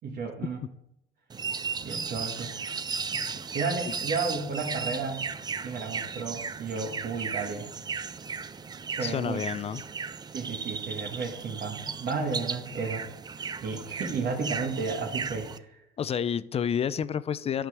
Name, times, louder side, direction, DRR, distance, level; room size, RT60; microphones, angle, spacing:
voice 1, 0.0-0.6 1.8-2.7 3.1-5.2 5.6-7.7 9.0-9.4 10.3-13.0 13.6-15.8, right 4 dB, 55° right, -1 dB, 1.8 m, -33 dB
sound 1, 1.3-15.6, right 5 dB, 25° right, 0.5 m, -36 dB
voice 2, 9.0-9.8 16.0-17.7, left 8 dB, 35° left, 16 dB, 0.5 m, -29 dB
12.5 x 5.1 x 6.2 m, 0.80 s
cardioid pair, 110°, 17 cm